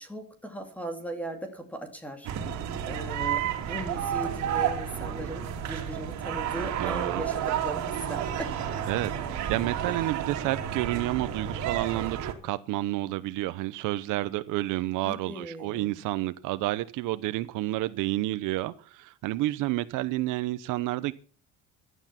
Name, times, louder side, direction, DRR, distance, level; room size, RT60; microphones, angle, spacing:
voice 1, 0.0-2.3 2.8-8.5 15.0-16.0, right 1 dB, 5° left, 2.3 m, -38 dB
sound 1, 2.2-12.3, right 9 dB, 60° right, 2.9 m, -31 dB
voice 2, 6.8-7.2 8.9-21.1, right 17 dB, 85° right, 0.9 m, -30 dB
15.5 x 11.5 x 5.9 m
cardioid pair, 165°, 31 cm